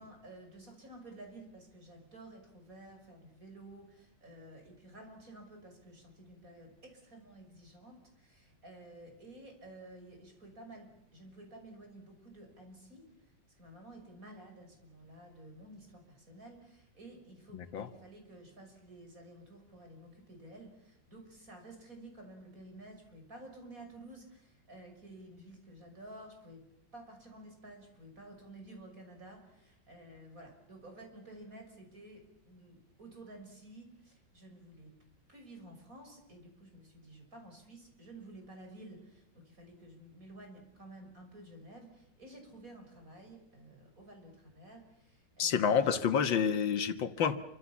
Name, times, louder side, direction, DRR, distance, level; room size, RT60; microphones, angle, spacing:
voice 1, 0.0-13.3 13.6-26.6 26.9-35.0 35.3-46.0, right 1 dB, 45° right, 6.7 m, -52 dB
voice 2, 17.5-17.9 45.4-47.4, left 7 dB, 90° left, 2.2 m, -29 dB
27.5 x 25.0 x 7.3 m
omnidirectional pair, 2.0 m